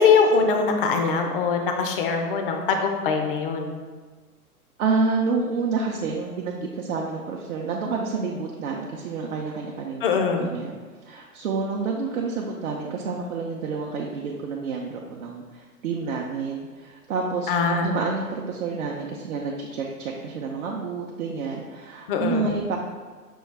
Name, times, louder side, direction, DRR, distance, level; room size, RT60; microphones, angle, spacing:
voice 1, 0.0-3.8 10.0-10.6 17.5-17.9 22.1-22.5, left 5 dB, 40° left, 4 dB, 0.5 m, -22 dB
voice 2, 4.8-10.1 10.4-10.8 11.0-22.8, right 4 dB, 60° right, -1 dB, 0.6 m, -29 dB
6.1 x 2.3 x 3.3 m, 1.4 s
hypercardioid pair, 120°, 46 cm